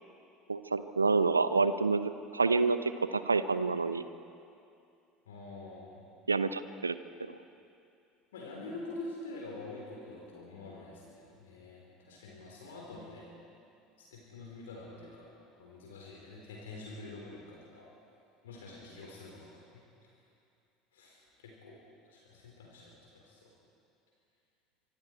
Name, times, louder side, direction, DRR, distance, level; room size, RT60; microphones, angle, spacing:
voice 1, 0.5-4.0 6.3-6.9, right 4 dB, 80° right, 13 dB, 0.7 m, -28 dB
voice 2, 5.3-6.0 8.3-13.3 14.0-15.3 15.6-17.9 18.4-19.8 20.9-21.8 22.1-23.0 23.2-23.5, left 2 dB, 70° left, -3 dB, 4.1 m, -46 dB
24.5 x 24.5 x 4.7 m, 2.5 s
figure-of-eight pair, 65°, 0 cm